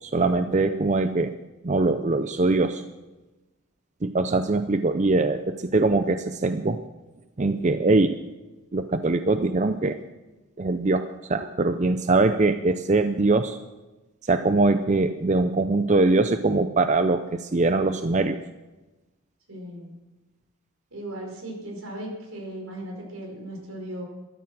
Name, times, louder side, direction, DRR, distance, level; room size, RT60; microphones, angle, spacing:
voice 1, 0.0-1.3 1.6-2.8 4.0-6.8 7.4-8.2 8.7-10.0 10.6-13.6 14.2-18.4, right 3 dB, 35° right, 9 dB, 0.5 m, -22 dB
voice 2, 19.5-19.9 20.9-24.0, right 1 dB, 80° right, 1 dB, 5.1 m, -37 dB
13.5 x 13.0 x 6.2 m, 1.1 s
head